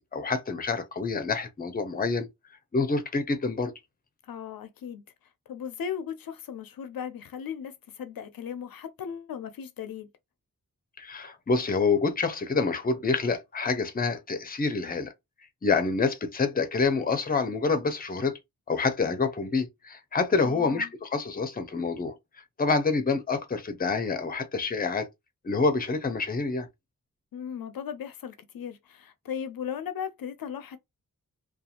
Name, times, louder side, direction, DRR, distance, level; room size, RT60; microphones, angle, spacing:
voice 1, 0.1-2.3 2.7-3.7 11.0-15.1 15.6-18.3 18.7-22.1 22.6-25.1 25.4-26.7, left 4 dB, 25° left, 0.5 m, -27 dB
voice 2, 4.2-5.0 5.5-10.1 20.4-20.9 27.3-30.8, left 8 dB, 80° left, 0.5 m, -37 dB
2.5 x 2.3 x 2.8 m
wide cardioid pair, 115°, 34 cm